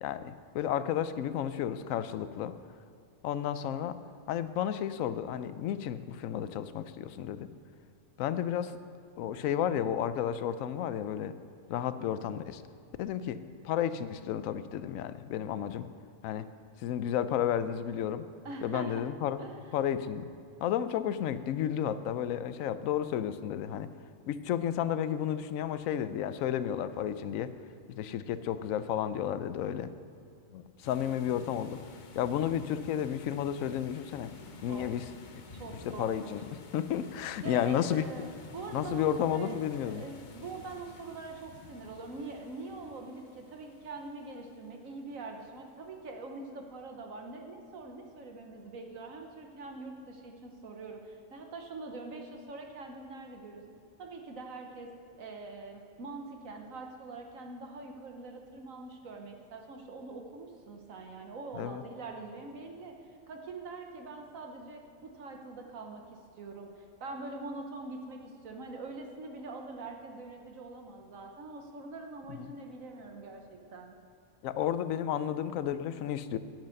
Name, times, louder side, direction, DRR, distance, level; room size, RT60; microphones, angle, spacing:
voice 1, 0.0-2.5 3.2-4.0 4.3-7.5 8.2-8.7 9.2-11.3 11.7-12.6 13.0-15.9 16.2-16.5 16.8-18.3 18.6-19.4 19.7-20.3 20.6-23.9 24.3-27.5 27.9-29.9 30.5-31.8 32.1-34.3 34.6-35.0 35.9-38.0 38.7-40.0 61.5-61.8 72.3-72.5 74.4-76.4, left 10 dB, 80° left, 13 dB, 1.0 m, -32 dB
voice 2, 18.4-19.0 19.4-19.8 34.7-34.9 35.5-36.3 37.4-53.6 54.0-54.9 55.2-63.0 63.3-73.9, right 3 dB, 80° right, 3 dB, 1.5 m, -44 dB
sound 1, 30.8-45.4, left 3 dB, 40° left, 0.8 m, -51 dB
10.5 x 8.1 x 6.4 m, 2.5 s
omnidirectional pair, 1.4 m